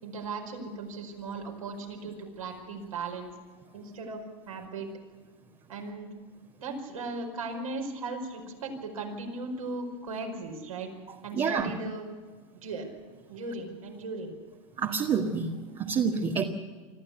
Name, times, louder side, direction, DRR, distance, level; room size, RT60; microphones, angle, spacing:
voice 1, 0.0-3.3 3.7-4.9 5.7-6.1 6.6-10.9 11.2-12.0 12.6-12.9 13.3-14.3, right 3 dB, 80° right, 1 dB, 5.1 m, -37 dB
voice 2, 11.3-11.7 14.8-16.4, right 6 dB, 30° right, 1 dB, 1.7 m, -28 dB
25.5 x 14.0 x 8.3 m, 1.5 s
hypercardioid pair, 95°, 17 cm